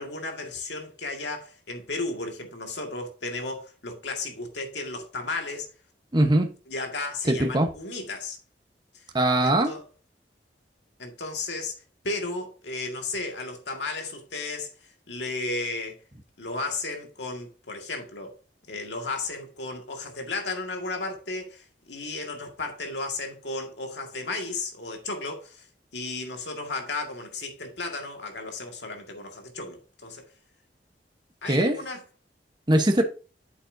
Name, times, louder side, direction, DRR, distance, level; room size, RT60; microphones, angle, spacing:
voice 1, 0.0-5.7 6.7-8.4 9.4-9.8 11.0-11.7 12.0-14.7 15.1-16.0 16.4-18.3 18.7-25.7 25.9-30.2 31.4-32.0, left 3 dB, 85° left, 1.9 m, -34 dB
voice 2, 6.1-6.5 7.3-7.7 9.1-9.7 31.4-31.8 32.7-33.0, right 1 dB, 25° right, 1.1 m, -21 dB
8.6 x 7.1 x 2.7 m
head